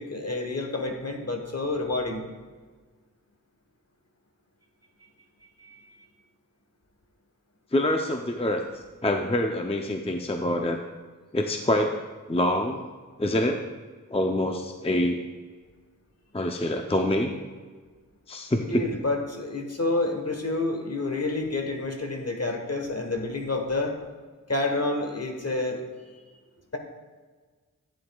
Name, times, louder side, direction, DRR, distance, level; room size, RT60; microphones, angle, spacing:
voice 1, 0.0-2.2 5.6-6.0 18.6-23.9 24.5-25.8 26.1-26.2, left 2 dB, 45° left, 3 dB, 1.3 m, -29 dB
voice 2, 7.7-10.8 11.3-11.9 12.3-12.8 13.2-13.6 14.1-15.2 16.3-17.3 18.3-18.8, left 1 dB, 20° left, 4 dB, 0.5 m, -26 dB
11.5 x 9.1 x 2.3 m, 1.5 s
wide cardioid pair, 65°, 33 cm